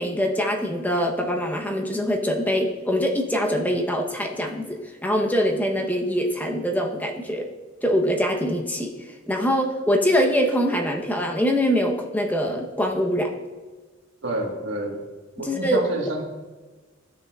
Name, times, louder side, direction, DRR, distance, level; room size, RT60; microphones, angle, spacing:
voice 1, 0.0-7.5 7.8-8.9 9.3-13.3 15.4-15.8, equal, 10° left, 1 dB, 0.8 m, -23 dB
voice 2, 14.2-15.0 15.4-16.2, right 1 dB, 70° right, 1 dB, 1.6 m, -29 dB
15.0 x 6.8 x 2.4 m, 1.3 s
head